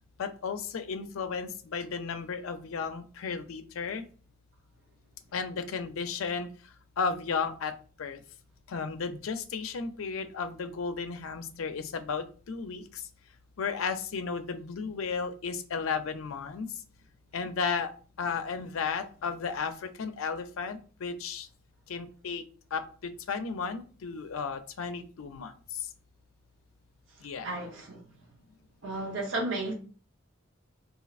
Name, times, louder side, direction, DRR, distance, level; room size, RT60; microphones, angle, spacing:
voice 1, 0.2-4.0 5.3-6.5 7.0-7.7 8.0-8.2 8.7-12.8 13.6-16.7 17.3-17.9 18.2-21.5 21.9-22.4 22.7-25.5 27.2-27.5, left 5 dB, 80° left, 0.4 m, -34 dB
voice 2, 27.2-28.0 28.8-29.7, right 2 dB, 65° right, 0.8 m, -34 dB
4.0 x 2.8 x 2.4 m
head